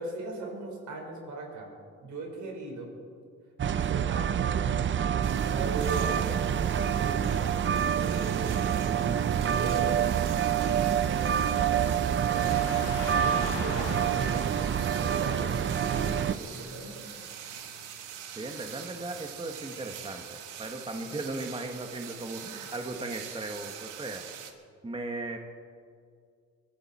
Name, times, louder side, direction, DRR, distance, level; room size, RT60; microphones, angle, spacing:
voice 1, 0.0-1.7 2.0-2.9 3.7-5.1 5.4-7.5 7.9-10.0 10.6-17.0, right 3 dB, 70° right, 0 dB, 4.8 m, -39 dB
sound 1, 3.6-16.3, right 9 dB, 40° right, 0.6 m, -27 dB
sound 2, 5.2-24.5, right 9 dB, 90° right, 1.5 m, -44 dB
Car passing by / Traffic noise roadway noise, 12.3-21.4, left 6 dB, 90° left, 1.8 m, -44 dB
voice 2, 18.4-24.2 24.8-25.4, right 2 dB, 20° right, 3 dB, 1.4 m, -37 dB
22.5 x 13.5 x 4.3 m, 2.2 s
cardioid pair, 90°, 30 cm